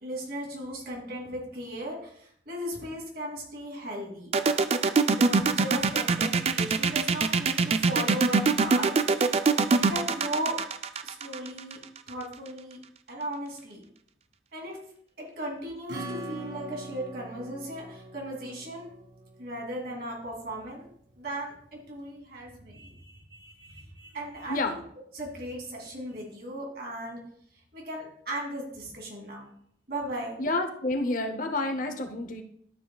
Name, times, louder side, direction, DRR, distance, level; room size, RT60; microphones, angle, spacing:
voice 1, 0.0-4.4 5.1-8.9 9.3-10.6 11.0-11.8 12.1-12.8 13.1-13.8 14.5-14.8 15.2-18.9 19.4-20.9 21.2-24.8 25.1-27.2 27.7-29.5 29.9-30.4, right 1 dB, 55° right, -1 dB, 2.8 m, -37 dB
sound 1, 4.3-12.1, right 4 dB, 35° right, 0.4 m, -23 dB
Acoustic guitar / Strum, 15.9-20.2, right 1 dB, 90° right, 1.9 m, -42 dB
voice 2, 30.4-32.4, left 2 dB, 45° left, 7 dB, 0.8 m, -29 dB
12.5 x 6.9 x 2.3 m, 0.66 s
head